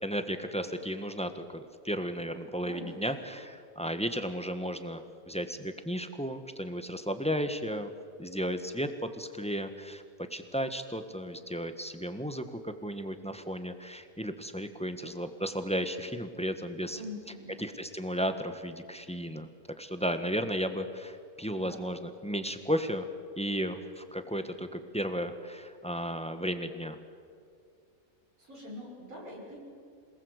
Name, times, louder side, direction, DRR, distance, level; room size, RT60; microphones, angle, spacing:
voice 1, 0.0-7.9 8.2-10.0 10.3-17.0 17.6-19.5 19.8-23.1 23.4-27.0, equal, 5° left, 8 dB, 1.3 m, -34 dB
voice 2, 2.6-3.3 16.9-17.6 21.5-21.8 28.4-29.6, left 1 dB, 75° right, -4 dB, 7.2 m, -44 dB
27.0 x 19.5 x 8.1 m, 2.3 s
omnidirectional pair, 1.5 m